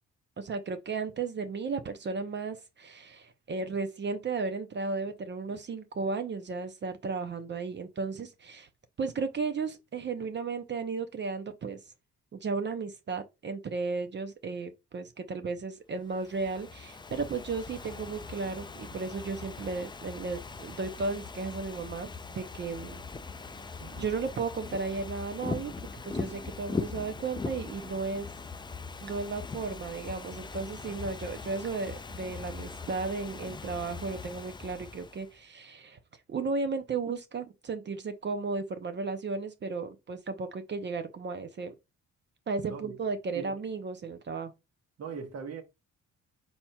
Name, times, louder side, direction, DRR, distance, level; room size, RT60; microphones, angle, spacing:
voice 1, 0.4-8.7 9.0-11.8 12.3-23.0 24.0-28.3 29.0-36.0 36.3-41.7 42.5-44.5, right 4 dB, 35° right, 0.6 m, -34 dB
Ocean / Fireworks, 16.1-35.4, left 4 dB, 15° left, 0.4 m, -41 dB
voice 2, 42.6-43.0 43.3-43.5 45.0-45.6, right 6 dB, 55° right, 1.1 m, -40 dB
4.2 x 4.2 x 2.2 m
cardioid pair, 90°, 30 cm